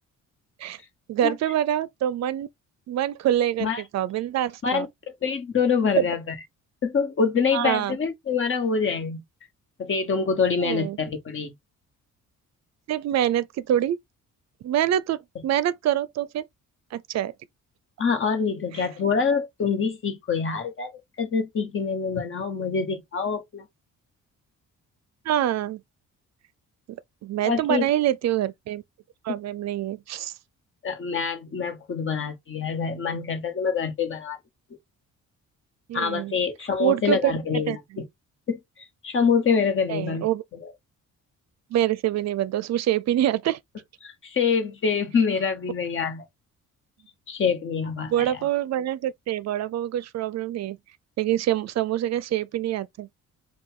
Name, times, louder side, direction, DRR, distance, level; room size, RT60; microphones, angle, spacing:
voice 1, 1.1-2.5 2.9-4.9 6.0-6.1 7.5-8.0 10.6-11.0 12.9-14.0 14.6-16.5 16.9-17.3 18.7-18.9 25.3-25.8 27.2-28.8 29.2-30.3 35.9-36.3 36.8-37.8 39.9-40.4 41.7-43.6 48.1-50.8 51.2-53.1, right 12 dB, 55° right, 0.5 m, -25 dB
voice 2, 4.6-6.2 6.8-9.2 9.8-11.5 18.0-23.6 27.4-27.9 29.3-29.4 30.8-34.4 35.9-38.1 38.5-38.6 39.0-40.3 40.6-40.7 44.0-46.2 47.3-48.4, left 5 dB, 40° left, 1.3 m, -25 dB
5.3 x 2.4 x 3.7 m
cardioid pair, 145°, 32 cm